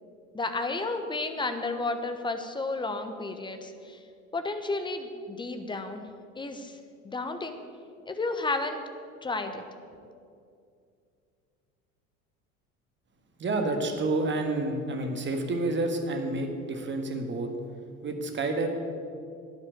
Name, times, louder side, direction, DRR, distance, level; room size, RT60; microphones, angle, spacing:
voice 1, 0.3-4.0 4.3-6.0 6.4-6.8 7.0-7.6 8.1-8.8 9.2-9.6, left 3 dB, 10° left, 7 dB, 1.2 m, -32 dB
voice 2, 13.4-17.5 18.0-18.7, right 2 dB, 25° right, 5 dB, 1.7 m, -29 dB
12.0 x 9.5 x 8.1 m, 2.4 s
figure-of-eight pair, 70°, 43 cm